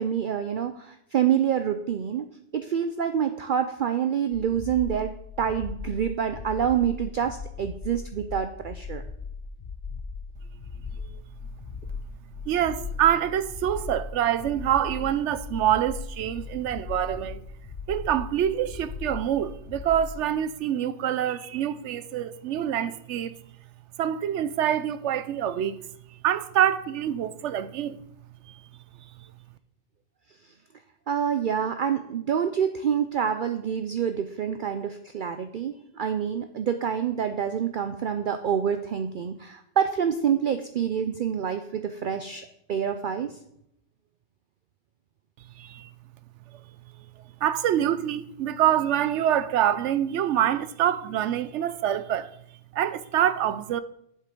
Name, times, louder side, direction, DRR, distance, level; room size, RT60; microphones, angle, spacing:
voice 1, 0.0-2.3 2.5-5.1 5.4-9.0 31.1-43.3, right 8 dB, 55° right, 0.6 m, -27 dB
sound 1, 4.3-20.2, left 4 dB, 45° left, 0.9 m, -38 dB
voice 2, 12.5-17.4 17.9-23.4 24.0-25.8 26.2-28.0 28.5-28.6 45.6-45.9 47.4-52.3 52.7-53.8, right 10 dB, 80° right, 0.9 m, -26 dB
7.8 x 7.5 x 5.2 m
omnidirectional pair, 1.2 m